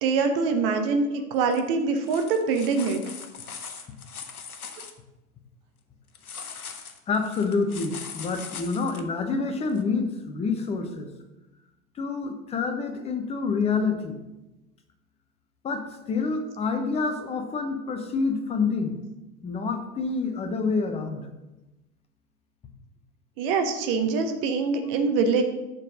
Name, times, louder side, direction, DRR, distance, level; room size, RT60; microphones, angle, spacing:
voice 1, 0.0-3.0 23.4-25.4, right 4 dB, 40° right, 6 dB, 0.9 m, -24 dB
sound 1, 1.4-1.6 2.0-4.9 6.1-9.0 9.8-9.9, left 6 dB, 80° left, 0.8 m, -40 dB
voice 2, 7.1-11.1 12.0-14.2 15.6-18.9 19.4-21.3, left 4 dB, 15° left, 6 dB, 0.7 m, -27 dB
6.5 x 3.9 x 6.0 m, 1.0 s
figure-of-eight pair, 95°, 43 cm